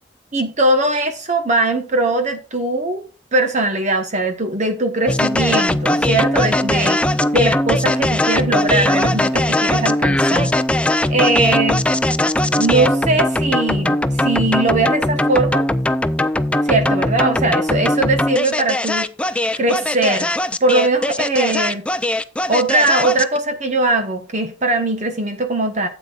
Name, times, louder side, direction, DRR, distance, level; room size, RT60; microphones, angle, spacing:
voice 1, 0.3-7.0 7.3-10.5 11.1-11.8 12.6-15.7 16.6-19.1 19.6-20.3 20.6-21.8 22.5-25.9, right 2 dB, 40° right, 1.1 m, -20 dB
sound 1, 5.1-23.4, left 1 dB, 5° left, 0.4 m, -19 dB
12.5 x 8.2 x 2.4 m
head